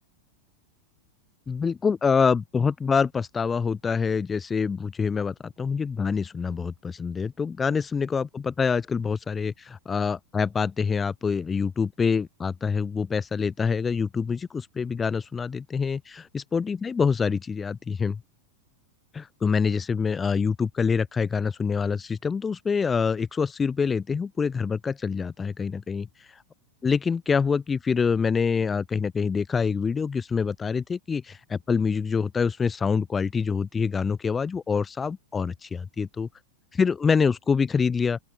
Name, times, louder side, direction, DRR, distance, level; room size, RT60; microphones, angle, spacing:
voice 1, 1.5-18.2 19.1-26.1 26.8-36.3 36.7-38.2, left 5 dB, 15° left, 4.3 m, -26 dB
open air
figure-of-eight pair, 90°, 0 cm